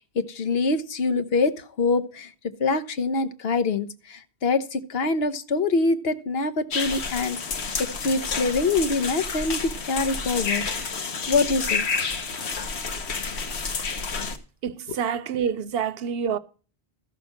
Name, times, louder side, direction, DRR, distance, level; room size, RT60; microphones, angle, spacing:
voice 1, 0.1-2.3 2.6-10.7 11.0-11.8, left 3 dB, 65° left, 1.2 m, -25 dB
sound 1, 6.7-14.4, left 4 dB, 80° left, 1.4 m, -29 dB
voice 2, 14.6-16.4, right 7 dB, 70° right, 0.9 m, -27 dB
13.5 x 5.8 x 6.5 m
omnidirectional pair, 1.1 m